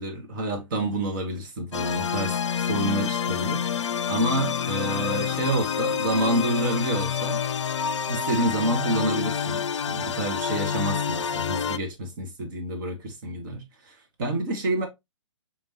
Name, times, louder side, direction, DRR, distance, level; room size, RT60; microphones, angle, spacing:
voice 1, 0.0-7.4 8.1-14.9, right 1 dB, 45° right, 1.6 m, -28 dB
sound 1, 1.7-11.8, left 7 dB, 70° left, 0.4 m, -28 dB
4.6 x 3.6 x 3.0 m
figure-of-eight pair, 125°, 16 cm